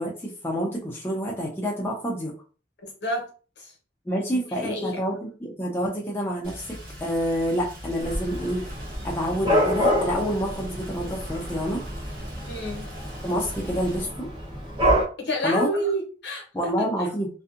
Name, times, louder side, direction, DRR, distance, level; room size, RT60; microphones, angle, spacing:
voice 1, 0.0-2.3 4.1-8.7 9.0-11.8 13.2-14.3 15.4-15.7 16.5-17.3, equal, 15° left, 0.4 m, -28 dB
voice 2, 2.8-3.3 3.6-3.7 4.3-5.0 12.4-12.9 15.2-16.5 16.8-17.1, equal, 65° left, 0.9 m, -29 dB
Rain, 6.4-14.0, equal, 50° right, 1.4 m, -41 dB
Dog / Cat, 8.0-15.0, equal, 25° right, 0.7 m, -27 dB
2.5 x 2.4 x 2.4 m
head